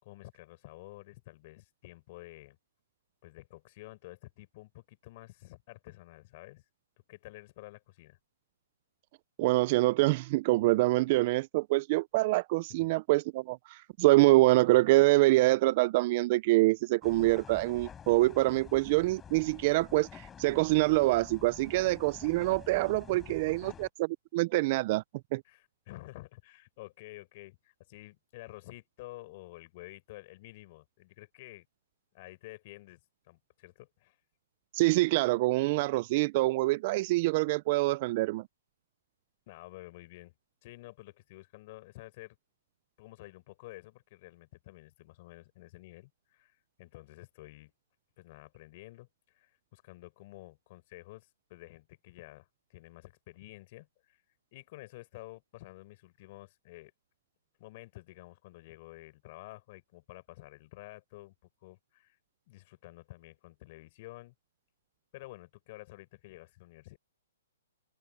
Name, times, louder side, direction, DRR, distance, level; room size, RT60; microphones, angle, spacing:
voice 1, 0.0-2.6 3.2-6.6 7.1-8.2 12.8-12.9 23.3-23.8 25.4-31.7 32.1-34.2 39.5-40.3 40.6-42.4 43.0-47.7 48.2-54.2 54.5-56.9 57.6-61.3 61.6-62.2 62.5-64.3 65.1-67.0, left 19 dB, 40° left, 6.0 m, -50 dB
voice 2, 9.4-24.1 24.3-25.0 25.3-25.4 34.7-38.4, right 20 dB, 35° right, 0.4 m, -25 dB
sound 1, 17.0-23.9, left 8 dB, 10° left, 6.1 m, -49 dB
open air
hypercardioid pair, 160°, 0 cm